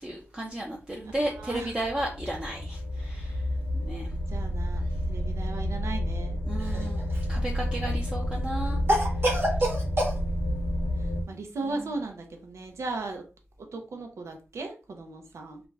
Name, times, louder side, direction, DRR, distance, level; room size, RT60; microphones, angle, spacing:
voice 1, 0.0-3.4 3.9-4.1 6.5-7.0 7.3-8.8, right 1 dB, 15° right, -1 dB, 0.5 m, -33 dB
sound 1, 1.0-11.2, equal, 70° left, 0.4 m, -30 dB
voice 2, 1.0-1.7 4.3-4.8 5.1-6.4 7.6-7.8 11.3-13.2 13.7-15.6, right 3 dB, 85° right, 3 dB, 0.5 m, -37 dB
Cough, 6.6-7.4 8.9-10.2, equal, 55° right, 1.0 m, -26 dB
2.4 x 2.1 x 3.2 m, 0.34 s
wide cardioid pair, 115°, 5 cm